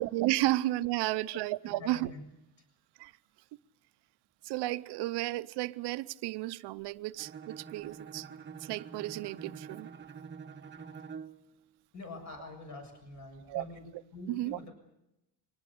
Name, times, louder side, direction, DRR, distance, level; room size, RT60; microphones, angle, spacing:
voice 1, 0.0-2.1 3.0-3.1 4.4-8.3 8.6-9.9 13.5-13.6 14.3-14.6, right 17 dB, 80° right, 0.8 m, -33 dB
voice 2, 1.6-2.2 11.9-13.9 14.1-14.7, left 2 dB, 45° left, 7.3 m, -45 dB
Bowed string instrument, 7.2-11.4, right 6 dB, 30° right, 1.1 m, -46 dB
23.5 x 18.5 x 8.6 m
cardioid pair, 145°, 40 cm